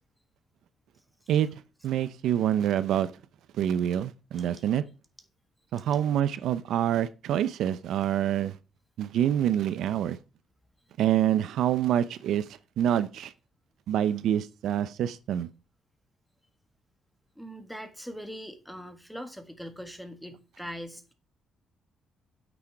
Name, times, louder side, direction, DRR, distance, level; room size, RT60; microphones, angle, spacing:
voice 1, 1.3-3.1 3.5-4.8 5.7-8.6 9.0-10.2 11.0-12.5 12.8-13.3 13.9-15.5, right 10 dB, 80° right, 0.6 m, -26 dB
voice 2, 17.4-21.1, equal, ahead, 1.7 m, -41 dB
8.8 x 6.3 x 4.6 m
cardioid pair, 90°, 0 cm